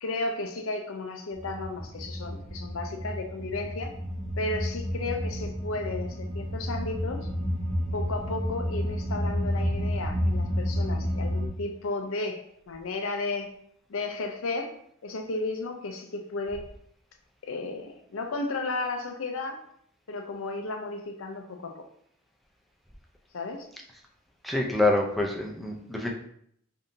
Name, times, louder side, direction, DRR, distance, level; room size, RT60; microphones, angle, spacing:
voice 1, 0.0-3.9 4.4-7.3 7.9-13.5 13.9-14.7 15.0-16.7 17.4-19.6 20.1-21.8 23.3-23.7, left 3 dB, 80° left, 4 dB, 0.6 m, -33 dB
sound 1, 1.3-11.5, equal, 40° right, 0.9 m, -30 dB
voice 2, 24.4-26.1, left 2 dB, ahead, -1 dB, 0.5 m, -26 dB
5.1 x 2.7 x 2.6 m, 0.67 s
head